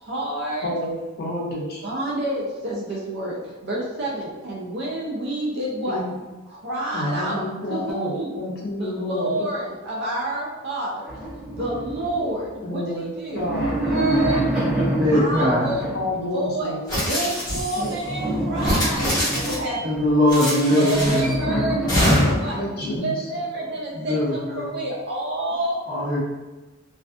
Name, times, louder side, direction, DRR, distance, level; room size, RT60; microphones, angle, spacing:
voice 1, 0.1-0.7 1.8-6.0 6.6-7.4 7.7-8.3 8.8-11.0 11.5-13.5 13.9-14.5 15.1-15.9 16.3-16.8 17.0-19.8 20.4-22.6 23.0-25.8, right 1 dB, 55° right, -4 dB, 0.4 m, -29 dB
voice 2, 0.6-1.8 5.9-6.1 6.9-9.4 12.6-13.1 13.3-13.8 15.9-16.8 17.8-17.9 20.7-23.2, left 1 dB, 50° left, -3 dB, 0.5 m, -29 dB
sound 1, 11.1-12.6 13.2-16.3 17.8-20.4 21.0-23.0, right 1 dB, 5° right, 0.6 m, -27 dB
voice 3, 15.0-15.7 19.8-21.3 22.7-23.0 23.9-24.7 25.9-26.2, left 1 dB, 40° right, -9 dB, 1.0 m, -21 dB
sound 2, 16.9-17.9 18.5-19.7 20.3-21.3 21.9-22.5, equal, 20° left, 0.9 m, -24 dB
2.3 x 2.3 x 2.4 m, 1.2 s
head